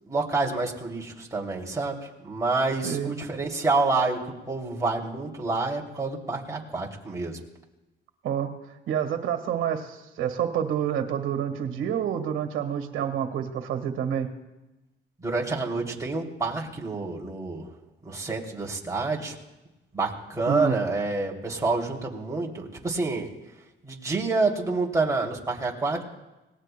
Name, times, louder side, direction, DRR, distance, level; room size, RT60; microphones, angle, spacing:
voice 1, 0.1-7.4 15.2-17.7 18.0-19.4 19.9-23.3 23.8-26.0, right 3 dB, 15° right, -2 dB, 2.7 m, -28 dB
voice 2, 2.8-3.2 8.2-8.5 8.9-14.3 20.5-20.8, right 9 dB, 85° right, 7 dB, 1.5 m, -28 dB
25.5 x 18.5 x 2.2 m, 1.0 s
cardioid pair, 90°, 20 cm